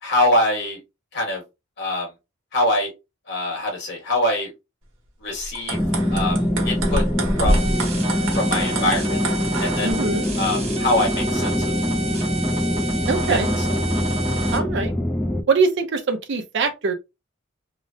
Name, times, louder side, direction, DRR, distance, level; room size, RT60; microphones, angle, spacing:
voice 1, 0.0-0.8 1.1-1.4 1.8-2.1 2.5-2.9 3.3-4.5 5.2-5.8 6.1-7.0 7.4-7.7 8.3-9.2 9.6-9.9 10.4-11.7 13.3-13.4, left 1 dB, 60° left, 1.4 m, -23 dB
sound 1, 5.4-9.9, right 1 dB, 80° right, 1.0 m, -26 dB
sound 2, 5.7-15.4, left 1 dB, 5° left, 0.3 m, -24 dB
sound 3, 7.5-14.6, right 2 dB, 35° right, 0.8 m, -31 dB
voice 2, 9.8-10.3 13.1-13.5 14.5-14.9 15.5-16.9, right 4 dB, 60° right, 0.5 m, -22 dB
2.9 x 2.1 x 2.6 m
head